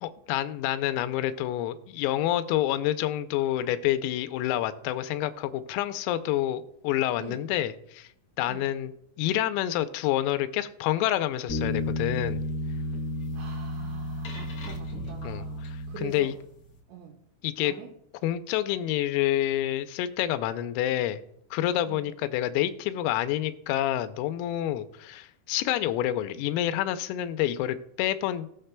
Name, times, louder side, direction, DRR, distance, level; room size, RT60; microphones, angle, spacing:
voice 1, 0.0-8.1 8.4-8.9 9.2-12.4 15.2-16.4 17.4-17.7 18.2-21.2 21.5-28.5, left 13 dB, 90° left, 11 dB, 3.3 m, -28 dB
sound 1, 11.5-16.4, left 1 dB, 60° left, 1.7 m, -32 dB
voice 2, 12.7-16.3 16.9-17.2 17.6-17.9 21.9-22.1, right 7 dB, 85° right, 2 dB, 2.6 m, -45 dB
18.5 x 6.6 x 2.2 m, 0.72 s
omnidirectional pair, 6.0 m